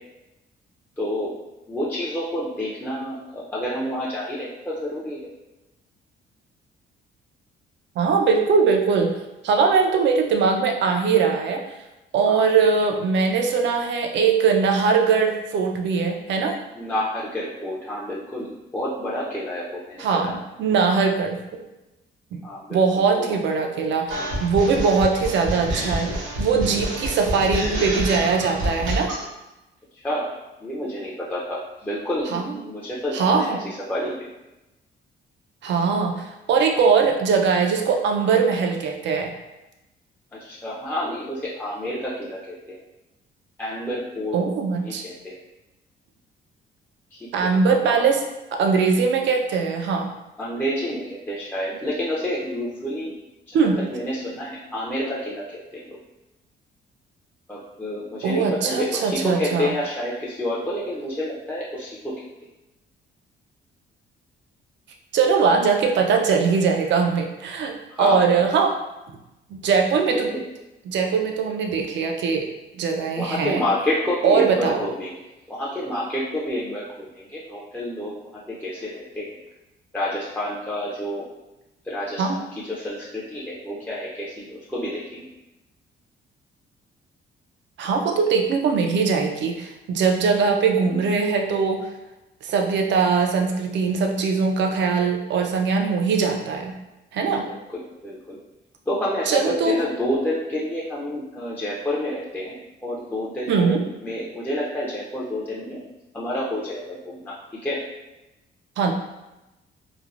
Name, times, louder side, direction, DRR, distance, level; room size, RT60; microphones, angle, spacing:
voice 1, 1.0-1.3 1.7-5.2 12.3-12.5 16.7-20.4 22.4-22.8 30.0-30.3 30.6-34.1 40.3-42.8 43.6-44.4 44.8-45.3 47.1-47.9 50.4-53.1 53.5-56.0 57.5-62.1 67.9-68.2 70.3-70.4 73.2-75.1 75.5-78.1 78.5-79.3 79.9-81.2 81.8-82.2 82.5-85.3 90.8-91.0 97.4-98.4 98.9-105.8 106.1-107.3 107.6-107.8, left 1 dB, 10° left, -6 dB, 0.5 m, -29 dB
voice 2, 8.0-9.1 9.4-11.6 12.1-16.6 20.0-21.6 22.3-22.4 22.7-29.1 32.3-32.4 33.1-33.6 35.6-39.3 44.3-45.0 47.3-48.2 48.5-50.1 53.5-53.8 58.2-59.7 65.1-68.8 69.5-70.3 70.9-72.5 72.8-73.6 74.2-74.9 82.2-82.4 87.8-91.9 92.4-96.8 97.1-97.5 99.3-99.8 103.5-103.8 108.8-108.9, right 5 dB, 65° right, 3 dB, 0.5 m, -21 dB
sound 1, 24.1-29.2, equal, 90° right, 0.9 m, -28 dB
3.3 x 2.1 x 2.4 m, 0.98 s
cardioid pair, 90°, 20 cm